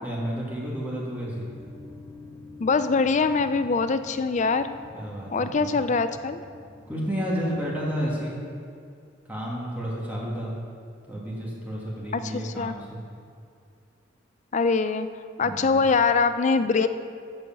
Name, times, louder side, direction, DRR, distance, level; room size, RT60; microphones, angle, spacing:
voice 1, 0.0-1.6 4.9-5.8 6.9-8.4 9.2-10.6 11.1-13.0 15.4-15.9, equal, 10° right, -5 dB, 1.6 m, -31 dB
sound 1, 1.4-8.1, left 2 dB, 10° left, 1.4 m, -47 dB
voice 2, 2.6-4.8 5.3-6.4 12.1-12.8 14.5-15.1 15.4-16.9, left 4 dB, 35° left, 11 dB, 0.4 m, -23 dB
7.9 x 7.7 x 7.0 m, 2.4 s
head